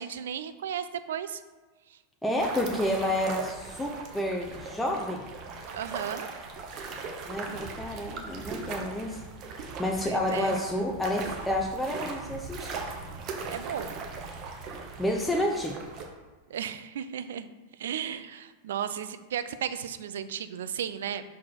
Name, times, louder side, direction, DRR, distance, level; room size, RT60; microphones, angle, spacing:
voice 1, 0.0-1.4 1.9-2.0 5.7-6.3 10.0-10.6 13.5-14.0 16.5-17.5 17.8-21.2, right 9 dB, 60° right, 12 dB, 0.4 m, -34 dB
voice 2, 2.2-5.2 7.3-9.2 9.5-12.8 15.0-15.8, left 1 dB, 5° left, 0 dB, 0.6 m, -30 dB
sound 1, 2.4-16.1, right 4 dB, 35° right, 0.9 m, -39 dB
6.0 x 4.1 x 4.4 m, 1.3 s
figure-of-eight pair, 90°, 0 cm